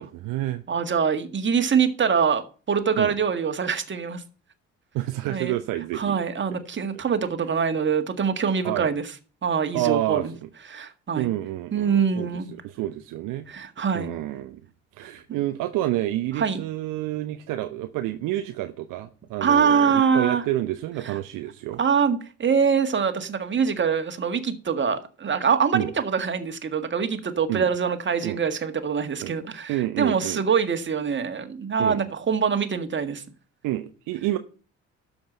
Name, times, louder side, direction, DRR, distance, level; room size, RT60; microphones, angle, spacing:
voice 1, 0.0-0.6 3.0-3.1 4.9-6.2 8.6-8.9 9.7-10.5 11.1-13.5 13.9-14.6 14.9-21.8 25.7-25.9 27.5-27.7 28.2-28.4 29.2-29.3 29.7-30.4 31.8-32.0 33.6-34.4, right 15 dB, 55° right, 0.9 m, -29 dB
voice 2, 0.7-2.4 2.7-4.2 5.3-5.5 5.9-9.0 9.4-10.3 10.7-11.3 11.7-12.5 13.5-14.1 16.4-16.6 19.4-20.4 21.0-21.2 21.8-33.2, right 6 dB, 30° right, 1.8 m, -24 dB
13.0 x 5.3 x 7.5 m
figure-of-eight pair, 50°, 38 cm